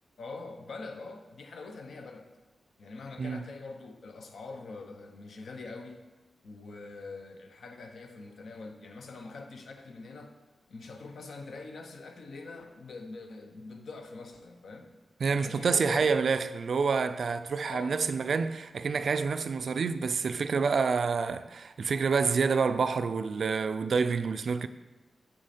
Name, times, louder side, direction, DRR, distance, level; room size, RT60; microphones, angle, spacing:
voice 1, 0.2-2.3 2.8-6.0 6.4-10.3 10.7-14.9 15.3-16.3 17.6-17.9, left 3 dB, 70° left, 0.8 m, -44 dB
voice 2, 15.2-24.7, right 5 dB, 60° right, 0.3 m, -28 dB
7.2 x 6.2 x 4.3 m
wide cardioid pair, 135°, 0 cm